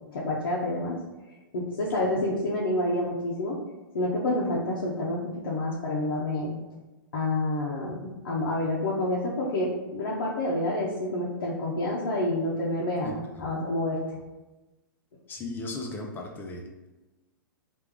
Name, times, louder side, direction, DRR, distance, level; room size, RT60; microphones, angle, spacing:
voice 1, 0.1-0.9 1.5-3.6 3.9-6.6 7.1-14.0, left 1 dB, 65° left, -5 dB, 0.7 m, -28 dB
voice 2, 13.0-13.5 15.3-16.6, left 2 dB, 15° left, 0 dB, 0.6 m, -37 dB
3.3 x 2.5 x 3.4 m, 1.1 s
hypercardioid pair, 115°, 12 cm